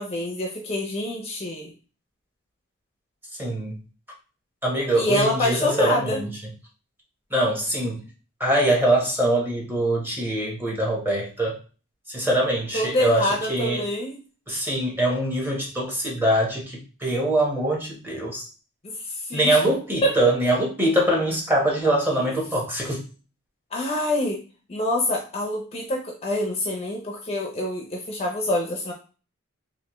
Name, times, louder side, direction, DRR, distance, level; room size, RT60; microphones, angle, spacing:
voice 1, 0.0-1.7 5.0-6.2 12.7-14.1 18.8-19.6 20.0-20.1 23.7-24.4 24.7-28.9, left 1 dB, 30° left, 0 dB, 0.6 m, -26 dB
voice 2, 3.4-3.8 4.6-6.3 7.3-8.0 8.4-11.6 12.1-13.9 14.5-18.4 19.3-23.0, right 1 dB, 10° right, -2 dB, 1.0 m, -23 dB
3.4 x 2.6 x 3.0 m, 0.35 s
head